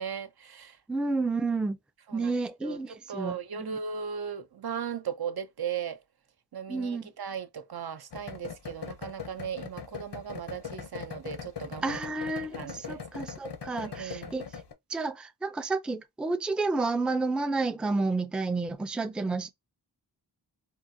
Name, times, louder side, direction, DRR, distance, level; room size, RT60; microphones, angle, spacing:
voice 1, 0.0-0.8 2.1-6.0 6.5-12.0 12.5-13.0 13.7-14.4, right 7 dB, 65° right, 0.6 m, -37 dB
voice 2, 0.9-1.8 2.1-3.8 6.7-7.0 11.8-14.4 14.9-19.5, right 3 dB, ahead, 0.4 m, -30 dB
sound 1, 8.1-14.7, left 6 dB, 75° left, 0.7 m, -40 dB
3.7 x 2.2 x 2.6 m
wide cardioid pair, 55°, 42 cm